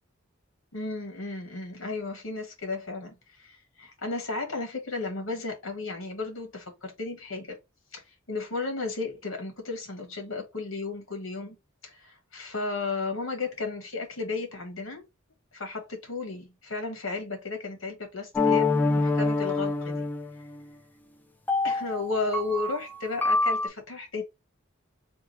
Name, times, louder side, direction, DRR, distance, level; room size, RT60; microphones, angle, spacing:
voice 1, 0.7-7.6 7.9-11.6 11.8-15.1 15.5-20.1 21.6-24.2, left 3 dB, 80° left, 1.8 m, -34 dB
sound 1, 18.3-20.6 21.5-23.7, left 3 dB, 10° left, 0.5 m, -26 dB
3.6 x 2.4 x 4.4 m
head